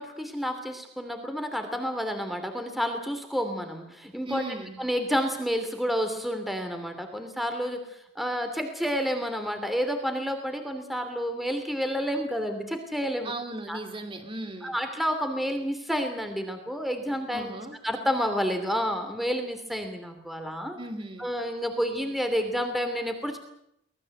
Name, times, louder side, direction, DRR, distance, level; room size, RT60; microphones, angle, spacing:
voice 1, 0.0-4.4 4.8-7.9 8.1-13.3 13.7-13.8 14.6-17.5 17.8-20.8 21.2-23.4, equal, ahead, 6 dB, 2.8 m, -30 dB
voice 2, 4.3-4.8 13.2-14.8 17.3-17.8 20.8-21.3, right 2 dB, 25° right, 6 dB, 2.7 m, -37 dB
25.0 x 19.5 x 7.8 m, 0.77 s
head